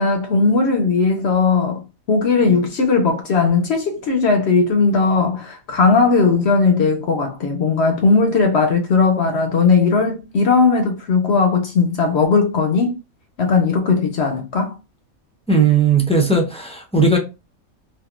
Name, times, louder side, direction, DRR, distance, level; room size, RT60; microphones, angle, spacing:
voice 1, 0.0-1.8 2.1-12.9 13.4-14.7, left 4 dB, 60° left, 0.8 m, -17 dB
voice 2, 15.5-17.2, right 4 dB, 10° left, 0.3 m, -16 dB
3.5 x 2.6 x 2.4 m
omnidirectional pair, 1.4 m